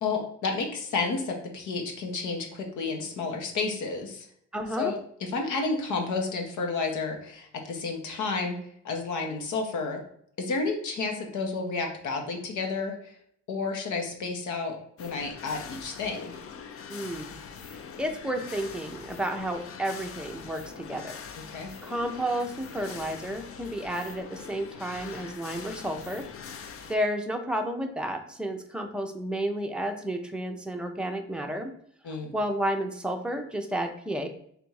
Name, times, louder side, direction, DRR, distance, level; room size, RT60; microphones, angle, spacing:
voice 1, 0.0-4.3 4.8-8.6 8.8-10.0 10.4-13.1 13.5-16.4 21.5-21.7 32.0-32.3, left 4 dB, 75° left, 3 dB, 1.0 m, -31 dB
voice 2, 4.5-4.9 16.9-17.3 18.0-21.2 21.8-26.2 26.9-31.7 32.3-34.3, right 1 dB, 5° right, 4 dB, 0.6 m, -31 dB
sound 1, 15.0-27.0, left 6 dB, 50° left, 0.5 m, -43 dB
3.4 x 2.6 x 4.6 m, 0.66 s
cardioid pair, 90°, 30 cm